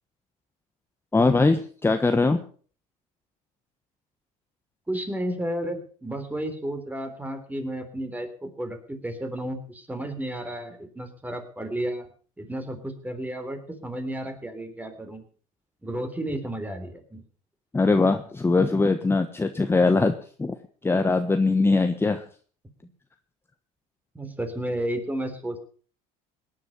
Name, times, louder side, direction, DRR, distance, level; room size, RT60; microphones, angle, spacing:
voice 1, 1.1-2.4 17.7-20.5 20.8-22.2, left 3 dB, 15° left, 7 dB, 1.3 m, -21 dB
voice 2, 4.9-12.1 12.4-15.2 15.8-17.2 24.1-25.6, right 1 dB, 10° right, 8 dB, 3.6 m, -32 dB
18.0 x 10.5 x 5.6 m, 0.42 s
supercardioid pair, 95°, 17 cm